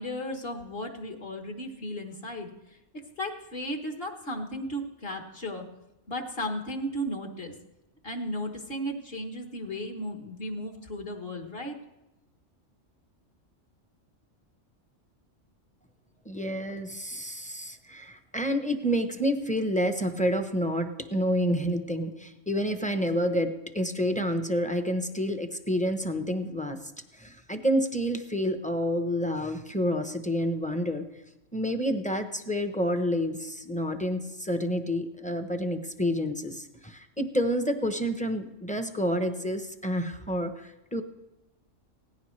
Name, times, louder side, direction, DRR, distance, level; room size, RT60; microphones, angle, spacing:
voice 1, 0.0-2.5 3.2-5.7 6.1-7.5 8.0-11.8, equal, 50° left, 3 dB, 1.5 m, -35 dB
voice 2, 16.3-26.8 27.1-31.1 31.5-41.0, equal, 10° left, 6 dB, 0.6 m, -29 dB
17.5 x 15.0 x 3.2 m, 0.94 s
omnidirectional pair, 1.3 m